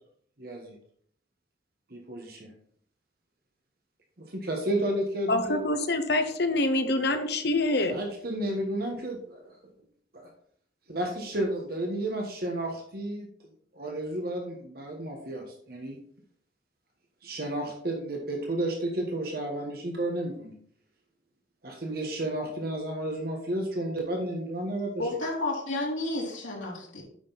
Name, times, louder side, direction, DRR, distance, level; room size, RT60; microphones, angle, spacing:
voice 1, 0.4-0.7 1.9-2.5 4.3-5.6 7.9-9.5 10.1-10.3 10.9-13.3 13.7-16.0 17.2-20.5 21.6-25.1, right 1 dB, 50° right, 1 dB, 1.3 m, -32 dB
voice 2, 5.3-8.0, left 2 dB, 55° left, 7 dB, 1.0 m, -26 dB
voice 3, 25.0-27.0, left 2 dB, 85° left, -3 dB, 3.2 m, -31 dB
8.6 x 6.0 x 4.0 m, 0.63 s
head